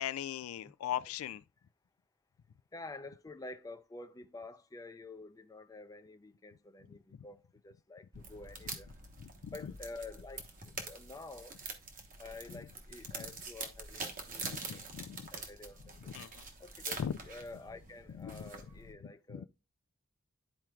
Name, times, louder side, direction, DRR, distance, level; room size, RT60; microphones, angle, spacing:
voice 1, 0.0-1.4 7.1-7.3 9.2-9.7 14.4-15.3 16.1-16.5 17.0-17.1 18.1-18.5 19.0-19.5, left 9 dB, 85° left, 0.3 m, -40 dB
voice 2, 2.7-8.9 9.5-10.4 10.9-11.6 12.2-14.9 15.3-16.1 16.6-19.5, left 3 dB, 15° left, 0.5 m, -49 dB
sound 1, 8.1-18.9, right 4 dB, 40° right, 1.2 m, -45 dB
12.0 x 4.4 x 2.4 m
head